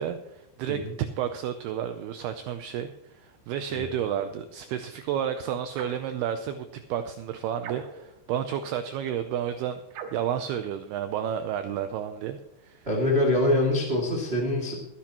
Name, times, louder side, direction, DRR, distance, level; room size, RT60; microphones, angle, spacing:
voice 1, 0.0-9.8 10.1-12.9, right 9 dB, 85° right, 9 dB, 2.2 m, -31 dB
sound 1, 5.7-6.1 7.6-8.2 9.9-10.3, right 6 dB, 70° right, 3.1 m, -40 dB
voice 2, 12.8-14.7, left 1 dB, 30° right, -3 dB, 1.1 m, -24 dB
22.0 x 10.5 x 3.0 m, 0.90 s
omnidirectional pair, 5.3 m